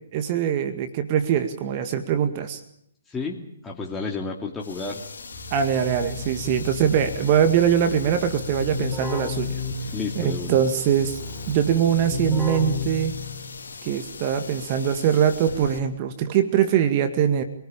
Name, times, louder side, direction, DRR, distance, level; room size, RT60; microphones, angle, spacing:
voice 1, 0.1-2.6 5.5-9.6 10.2-11.2 11.5-13.2 13.8-17.4, right 9 dB, 35° right, 8 dB, 2.0 m, -22 dB
voice 2, 3.1-5.0 9.9-10.6, left 4 dB, 10° left, -1 dB, 2.5 m, -31 dB
sound 1, 4.6-15.8, left 4 dB, 70° left, 2.9 m, -40 dB
Keyboard (musical), 5.3-13.6, left 4 dB, 10° right, 4.4 m, -33 dB
26.0 x 19.5 x 8.8 m, 0.74 s
figure-of-eight pair, 130°, 0 cm